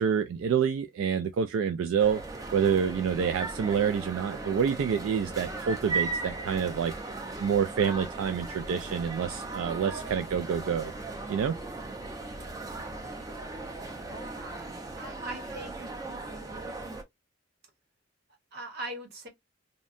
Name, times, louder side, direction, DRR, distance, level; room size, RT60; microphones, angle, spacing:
voice 1, 0.0-2.2 2.5-10.9 11.3-11.5, right 7 dB, 80° right, 0.3 m, -28 dB
sound 1, 2.0-17.0, right 3 dB, 20° right, 0.5 m, -37 dB
voice 2, 14.1-16.0 18.5-19.3, right 1 dB, 55° right, 1.0 m, -41 dB
2.7 x 2.1 x 2.4 m
head